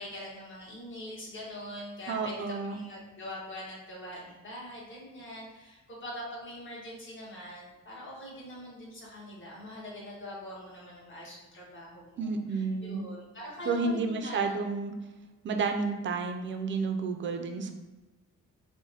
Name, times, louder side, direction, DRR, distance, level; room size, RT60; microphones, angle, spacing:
voice 1, 0.0-14.6 17.3-17.7, left 1 dB, 40° left, -5 dB, 1.1 m, -43 dB
voice 2, 2.1-2.8 12.2-13.0 13.7-14.9 15.4-17.7, right 4 dB, 40° right, 5 dB, 0.4 m, -31 dB
4.7 x 2.1 x 2.8 m, 1.2 s
wide cardioid pair, 155°, 30 cm